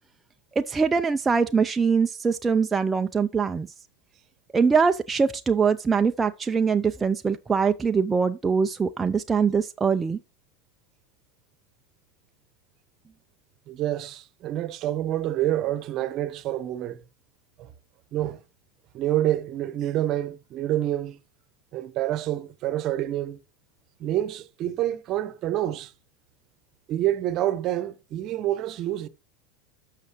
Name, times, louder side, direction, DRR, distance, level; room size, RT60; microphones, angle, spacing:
voice 1, 0.6-3.7 4.5-10.2, right 5 dB, 20° right, 0.5 m, -23 dB
voice 2, 13.7-17.0 17.6-17.7 18.1-18.4 18.9-21.2 21.7-23.4 24.0-25.9 26.9-29.1, right 13 dB, 45° right, 1.0 m, -27 dB
12.0 x 6.6 x 3.0 m
hypercardioid pair, 90°, 0 cm